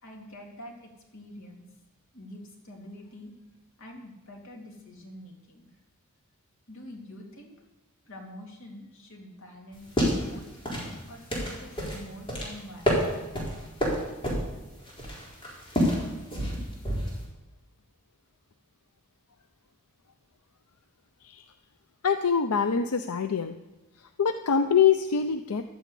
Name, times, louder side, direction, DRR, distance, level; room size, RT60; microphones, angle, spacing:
voice 1, 0.0-1.6 2.1-3.3 3.8-5.7 6.7-7.5 8.0-10.5 11.1-13.0, left 1 dB, 60° left, 0 dB, 3.3 m, -46 dB
sound 1, 9.7-17.2, equal, 25° left, 4.2 m, -29 dB
voice 2, 22.0-23.5 24.2-25.6, left 7 dB, 85° left, 9 dB, 0.6 m, -24 dB
12.0 x 9.3 x 8.4 m, 1.0 s
head